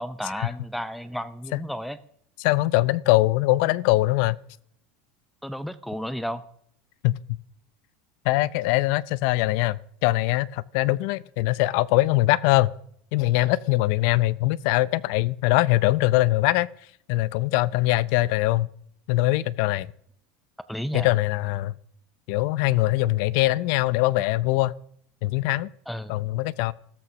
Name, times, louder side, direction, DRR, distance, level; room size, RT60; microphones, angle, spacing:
voice 1, 0.0-2.0 5.4-6.4 20.7-21.1 25.9-26.1, equal, ahead, 0.5 m, -32 dB
voice 2, 2.4-4.4 7.0-7.2 8.2-12.7 13.1-16.7 17.1-18.7 19.1-19.9 20.9-21.7 22.3-24.7 25.2-25.7 26.1-26.7, left 18 dB, 55° left, 0.5 m, -22 dB
14.0 x 13.5 x 6.2 m
supercardioid pair, 165°, 0 cm